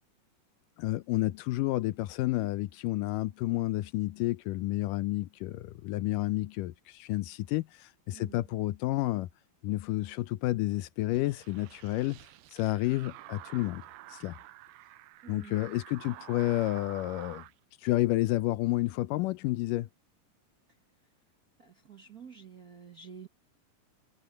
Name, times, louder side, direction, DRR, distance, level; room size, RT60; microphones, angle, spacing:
voice 1, 0.8-9.3 9.6-12.2 12.5-13.8 14.1-14.4 15.3-17.4 17.8-19.9, left 17 dB, 85° left, 2.3 m, -30 dB
sound 1, 11.1-17.5, right 16 dB, 80° right, 1.6 m, -49 dB
voice 2, 15.2-15.6 21.6-23.3, right 7 dB, 45° right, 1.2 m, -49 dB
omnidirectional pair, 3.8 m